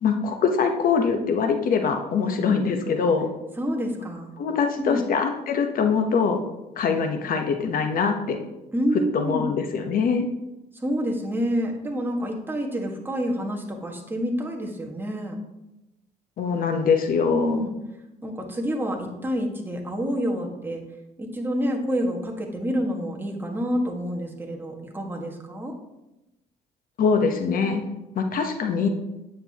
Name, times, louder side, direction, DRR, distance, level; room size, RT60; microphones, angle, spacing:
voice 1, 0.0-3.3 4.4-6.4 6.8-8.4 9.1-10.3 16.4-17.6 27.0-27.8 28.1-28.9, left 5 dB, 55° left, 5 dB, 1.0 m, -23 dB
voice 2, 2.2-2.6 3.6-4.3 4.8-5.0 8.7-9.5 10.8-15.4 17.3-17.7 18.2-20.8 21.2-25.7, equal, 10° right, 0 dB, 1.6 m, -28 dB
9.4 x 7.8 x 2.9 m, 0.96 s
cardioid pair, 110°, 17 cm